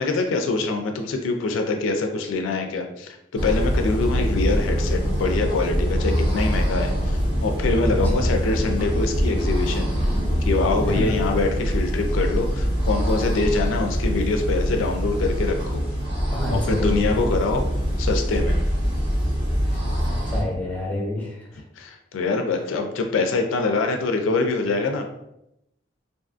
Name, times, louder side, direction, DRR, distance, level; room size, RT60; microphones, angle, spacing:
voice 1, 0.0-9.9 10.4-15.8 16.5-17.6 18.0-18.6 21.8-25.0, left 3 dB, 85° left, 4 dB, 0.3 m, -24 dB
sound 1, 3.4-20.4, equal, 25° right, 0.9 m, -24 dB
voice 2, 7.8-8.3 10.8-11.3 16.3-17.2 19.6-19.8 20.1-21.6, left 1 dB, 10° left, -2 dB, 0.6 m, -29 dB
2.5 x 2.4 x 2.4 m, 0.84 s
head